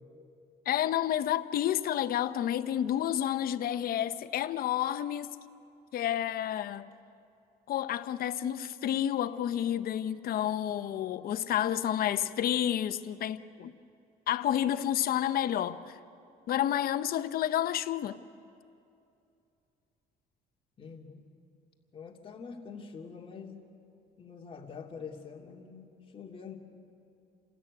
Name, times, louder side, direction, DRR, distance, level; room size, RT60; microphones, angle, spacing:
voice 1, 0.7-5.3 5.9-6.9 7.7-13.7 14.3-16.0 16.5-18.2, left 11 dB, 60° left, 0.9 m, -30 dB
voice 2, 20.8-21.3 21.9-23.6 24.2-25.9 26.1-26.6, left 5 dB, 30° left, 2.8 m, -45 dB
28.5 x 13.5 x 9.7 m
cardioid pair, 110°, 17 cm